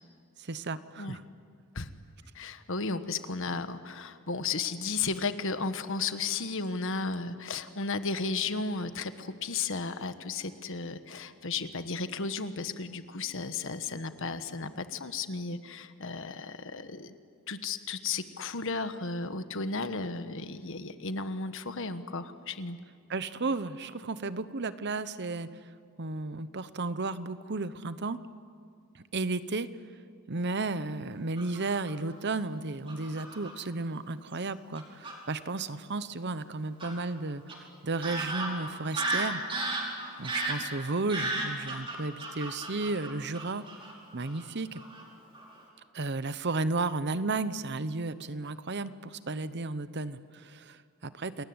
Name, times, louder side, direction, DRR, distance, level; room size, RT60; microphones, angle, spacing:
voice 1, 0.4-1.2 23.1-25.6 26.0-28.2 28.9-29.7 30.3-39.4 40.2-43.7 44.1-44.8 45.9-51.4, right 3 dB, 50° right, 14 dB, 0.9 m, -33 dB
voice 2, 2.3-17.1 17.5-22.8, left 4 dB, 60° left, 10 dB, 1.4 m, -34 dB
Fowl / Bird vocalization bird call bird song, 31.4-32.1 32.9-33.5 34.3-34.4 34.8-35.2 36.8-36.9 37.5-37.6 38.0-43.9 44.2-44.4 44.8-45.0 45.3-45.6, right 2 dB, 25° right, 5.0 m, -34 dB
29.0 x 21.0 x 9.7 m, 2.2 s
head